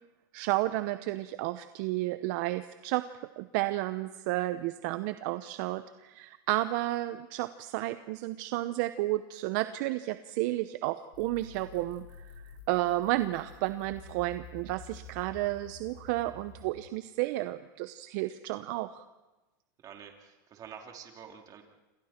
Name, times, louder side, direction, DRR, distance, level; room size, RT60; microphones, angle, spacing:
voice 1, 0.3-3.0 3.4-19.0, right 17 dB, 60° right, 12 dB, 0.8 m, -32 dB
sound 1, 11.1-16.7, left 4 dB, 70° left, 5.7 m, -49 dB
voice 2, 19.8-21.6, right 7 dB, 35° right, 2 dB, 3.2 m, -48 dB
27.5 x 27.5 x 4.5 m, 1.1 s
supercardioid pair, 125°, 11 cm